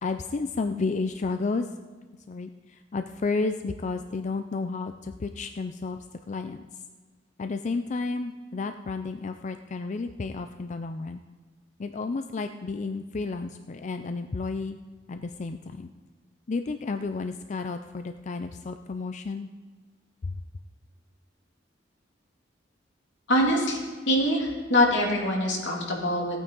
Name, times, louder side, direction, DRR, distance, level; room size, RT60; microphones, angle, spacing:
voice 1, 0.0-1.7 2.3-6.0 6.3-6.6 7.4-11.2 11.8-14.8 15.1-15.9 16.5-19.5 20.2-20.3, left 3 dB, 40° left, 8 dB, 0.4 m, -32 dB
voice 2, 23.3-23.8 24.1-26.4, left 1 dB, 80° left, -1 dB, 2.6 m, -24 dB
16.0 x 9.1 x 3.9 m, 1.4 s
head